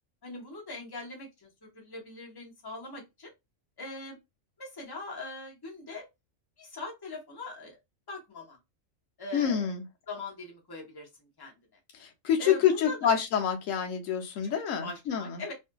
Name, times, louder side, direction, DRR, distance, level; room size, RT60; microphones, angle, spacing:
voice 1, 0.2-3.3 3.8-4.2 4.6-6.0 6.6-7.8 8.1-8.6 9.2-9.7 10.1-11.5 12.4-13.1 14.8-15.5, left 2 dB, 20° left, 0.8 m, -41 dB
voice 2, 9.3-9.8 12.0-15.4, left 8 dB, 85° left, 1.0 m, -27 dB
2.6 x 2.5 x 2.2 m
omnidirectional pair, 1.3 m